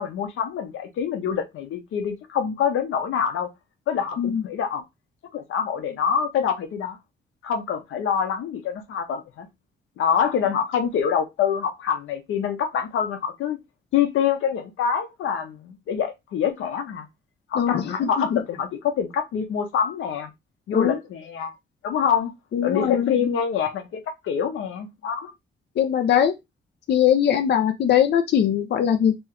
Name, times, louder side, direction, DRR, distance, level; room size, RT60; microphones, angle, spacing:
voice 1, 0.0-3.5 3.9-4.8 5.3-7.0 7.4-9.5 10.0-13.6 13.9-17.1 17.5-20.3 20.7-21.6 21.8-22.3 22.6-25.3, left 7 dB, 90° left, 0.8 m, -25 dB
voice 2, 17.5-18.4 20.7-21.0 22.5-23.1 25.8-26.3 26.9-29.2, left 9 dB, 60° left, 0.6 m, -21 dB
3.5 x 3.1 x 3.0 m
cardioid pair, 145°, 20 cm